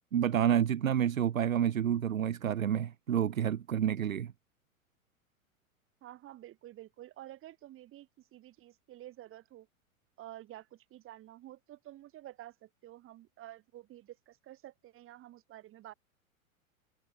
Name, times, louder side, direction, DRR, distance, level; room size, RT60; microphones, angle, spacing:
voice 1, 0.1-4.3, right 9 dB, 70° right, 1.1 m, -29 dB
voice 2, 6.0-9.7 10.2-15.9, right 14 dB, 30° right, 5.8 m, -50 dB
figure-of-eight pair, 95°, 42 cm